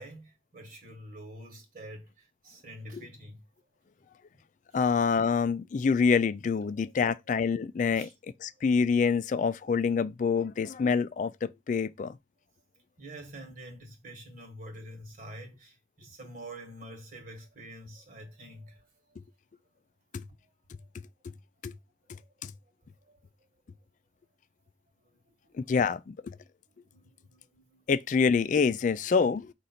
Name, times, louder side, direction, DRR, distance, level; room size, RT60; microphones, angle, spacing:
voice 1, 0.0-3.4 7.9-8.1 8.6-8.7 13.0-18.9 20.4-20.5 20.8-20.9 22.1-22.3 23.0-23.2 25.1-25.2 26.9-27.8, right 1 dB, 50° right, 1.4 m, -47 dB
voice 2, 4.7-8.1 8.4-12.2 21.6-21.7 22.4-22.5 25.6-26.3 27.9-29.5, left 5 dB, 45° left, 0.3 m, -26 dB
5.0 x 2.5 x 4.2 m
head